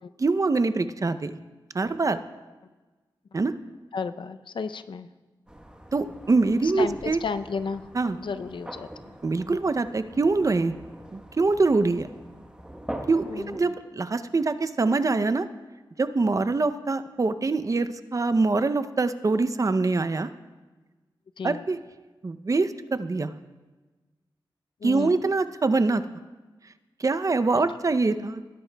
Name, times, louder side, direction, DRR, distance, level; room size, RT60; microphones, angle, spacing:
voice 1, 0.2-1.4 1.7-2.2 3.3-3.5 5.9-7.2 7.9-8.2 9.2-10.7 11.1-12.1 13.1-15.5 16.0-20.3 21.4-21.8 22.2-23.3 24.8-26.0 27.0-28.4, right 3 dB, 40° right, 11 dB, 0.6 m, -24 dB
voice 2, 3.9-5.1 6.6-7.9 8.2-9.2 9.5-9.6 13.2-13.7 21.4-21.6 24.8-25.1, left 5 dB, 75° left, 10 dB, 0.5 m, -33 dB
sound 1, 5.5-13.6, right 1 dB, 10° right, 1.1 m, -43 dB
20.5 x 10.5 x 2.3 m, 1.3 s
wide cardioid pair, 70°, 8 cm